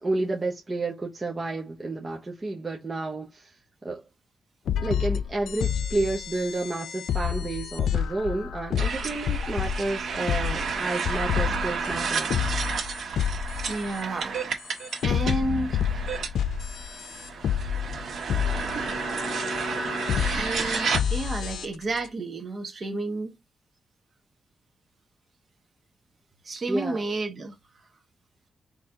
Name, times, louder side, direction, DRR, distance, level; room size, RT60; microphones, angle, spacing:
voice 1, 0.0-3.5 3.8-4.0 4.8-12.4 26.7-27.0, right 2 dB, 20° right, 0.9 m, -31 dB
sound 1, 4.7-10.8 11.0-14.0 14.6-22.1, left 8 dB, 90° left, 0.5 m, -29 dB
sound 2, 8.8-21.3, right 5 dB, 65° right, 1.5 m, -31 dB
voice 2, 13.7-15.9 20.3-23.4 26.4-27.6, right 2 dB, 35° right, 1.4 m, -31 dB
4.4 x 3.3 x 3.6 m
wide cardioid pair, 150°, 0 cm